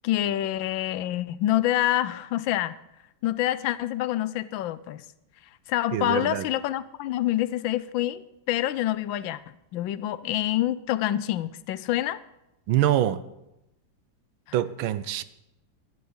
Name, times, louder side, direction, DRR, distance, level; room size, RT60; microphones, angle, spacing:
voice 1, 0.0-2.7 3.2-5.0 5.7-9.4 9.7-12.2, left 13 dB, 80° left, 16 dB, 1.4 m, -27 dB
voice 2, 5.9-6.5 12.7-13.2 14.5-15.2, right 12 dB, 90° right, 14 dB, 1.5 m, -24 dB
12.5 x 10.5 x 7.0 m, 0.89 s
omnidirectional pair, 2.1 m